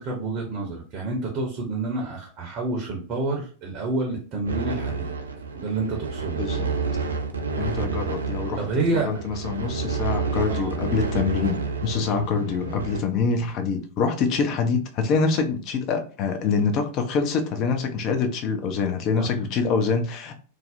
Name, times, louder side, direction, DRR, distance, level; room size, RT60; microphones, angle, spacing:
voice 1, 0.0-5.1 5.6-6.4 8.6-9.2 10.5-10.7 19.2-19.3, right 3 dB, 35° right, 0 dB, 0.6 m, -28 dB
sound 1, 4.4-13.0, right 4 dB, 75° right, 0.3 m, -29 dB
voice 2, 6.4-6.7 7.6-8.6 8.9-20.3, left 5 dB, 40° left, 6 dB, 0.5 m, -25 dB
2.5 x 2.0 x 2.4 m, 0.40 s
figure-of-eight pair, 90°, 0 cm